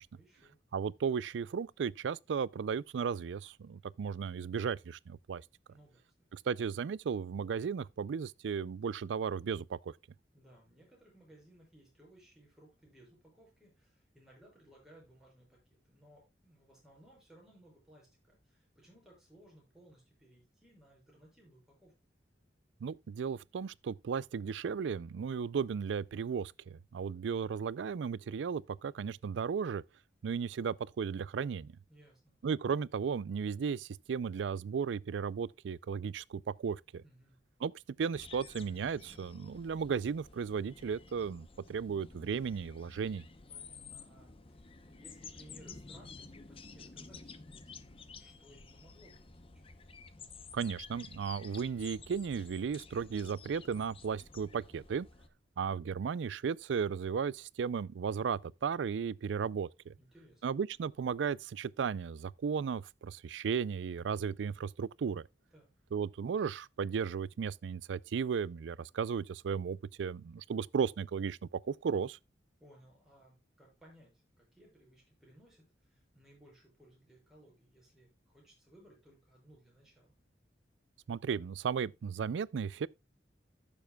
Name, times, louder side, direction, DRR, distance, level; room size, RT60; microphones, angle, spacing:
voice 1, 0.1-0.6 5.7-6.0 10.3-21.9 31.9-32.3 37.0-37.4 43.5-49.6 60.0-60.4 65.5-65.7 72.6-80.1, right 1 dB, 5° right, 6.0 m, -61 dB
voice 2, 0.7-5.4 6.3-9.9 22.8-29.8 30.2-31.7 32.4-37.0 37.6-37.7 38.0-43.2 50.5-55.1 55.6-59.9 60.4-65.3 65.9-72.2 81.1-82.9, right 6 dB, 80° right, 0.4 m, -35 dB
sound 1, 38.1-55.3, left 4 dB, 30° left, 0.8 m, -52 dB
15.0 x 7.1 x 2.3 m
head